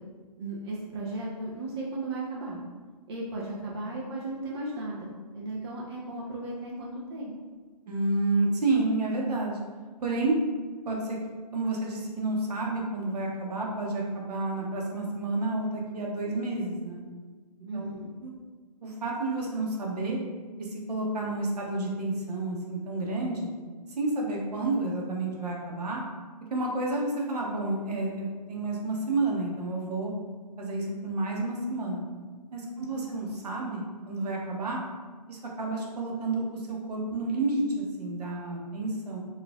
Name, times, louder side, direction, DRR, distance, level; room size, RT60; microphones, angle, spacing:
voice 1, 0.4-2.6 3.1-7.4 17.7-18.1 32.7-33.1, right 2 dB, 40° right, -4 dB, 0.5 m, -36 dB
voice 2, 7.9-9.6 10.0-10.3 10.9-11.2 11.5-17.0 17.7-17.9 18.8-20.2 20.6-23.5 24.0-26.0 26.5-30.1 30.6-32.0 32.5-34.8 35.3-36.6 36.9-39.2, right 2 dB, 70° right, -1 dB, 0.9 m, -30 dB
4.1 x 2.4 x 2.3 m, 1.4 s
hypercardioid pair, 145°, 21 cm